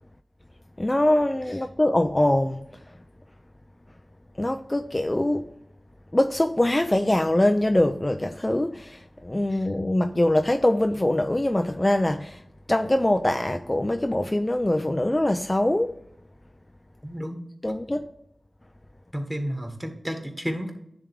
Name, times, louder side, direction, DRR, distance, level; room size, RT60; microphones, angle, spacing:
voice 1, 0.8-3.0 4.4-5.5 6.1-12.4 12.7-16.0 17.6-18.1, left 1 dB, 25° left, 0.4 m, -23 dB
voice 2, 17.0-17.4 19.1-20.7, equal, 10° right, 1.6 m, -31 dB
10.0 x 3.5 x 3.6 m
cardioid pair, 45°, 0 cm